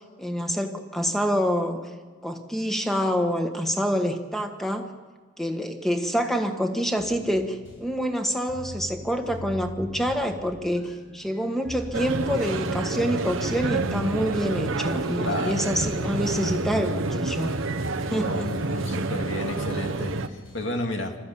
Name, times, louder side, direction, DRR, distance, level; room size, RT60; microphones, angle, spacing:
voice 1, 0.2-1.8 2.2-4.9 5.4-17.5 18.0-18.4, equal, ahead, 5 dB, 1.5 m, -27 dB
sound 1, 7.0-20.6, left 1 dB, 85° left, 6.4 m, -42 dB
sound 2, 11.9-20.3, right 3 dB, 85° right, 1.1 m, -28 dB
voice 2, 15.2-15.7 18.2-21.2, left 1 dB, 65° left, 3 dB, 2.4 m, -32 dB
26.0 x 13.5 x 8.5 m, 1.4 s
head